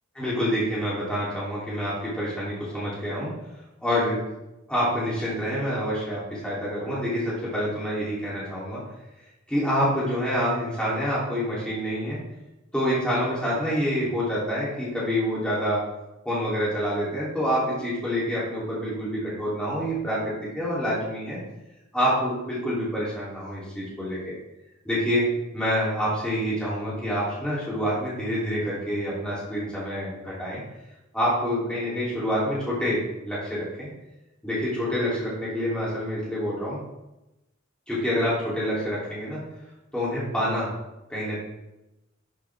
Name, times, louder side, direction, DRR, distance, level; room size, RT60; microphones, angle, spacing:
voice 1, 0.1-3.3 3.8-4.2 4.7-8.8 9.5-12.2 12.7-15.8 16.3-21.4 21.9-24.3 24.8-25.3 25.5-30.6 31.1-33.9 34.4-36.8 37.9-39.4 39.9-40.7 41.1-41.4, equal, 5° left, -8 dB, 3.7 m, -27 dB
11.5 x 8.2 x 3.8 m, 0.95 s
head